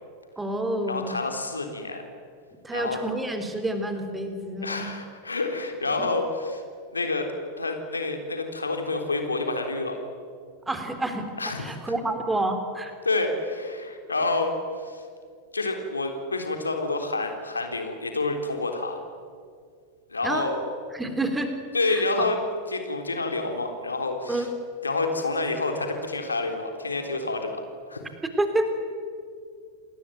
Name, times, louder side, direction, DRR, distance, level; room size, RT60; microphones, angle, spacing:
voice 1, 0.4-1.2 2.6-4.9 6.0-6.1 10.7-11.3 11.6-12.9 20.2-20.5 20.9-21.5 21.9-22.3 24.3-24.5 28.4-28.7, right 1 dB, 10° right, 6 dB, 3.4 m, -28 dB
voice 2, 0.9-2.0 2.7-3.0 4.6-6.6 6.9-7.3 7.6-10.0 11.4-11.9 13.0-15.1 15.5-19.0 20.1-20.6 21.7-22.4 22.7-24.5 24.8-28.0, left 3 dB, 80° left, 4 dB, 3.7 m, -28 dB
28.0 x 20.0 x 9.3 m, 2.2 s
figure-of-eight pair, 90°, 0 cm